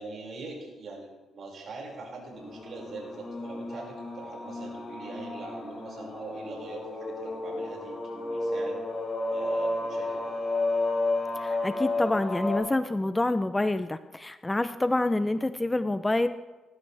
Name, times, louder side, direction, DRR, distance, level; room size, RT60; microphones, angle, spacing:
voice 1, 0.0-8.8 9.3-10.4, right 3 dB, 55° right, -1 dB, 5.8 m, -42 dB
sound 1, 2.3-12.6, left 2 dB, 35° left, 4.7 m, -32 dB
voice 2, 11.4-16.3, left 2 dB, 15° left, 11 dB, 0.7 m, -27 dB
19.5 x 15.0 x 3.5 m, 1.2 s
cardioid pair, 90°, 0 cm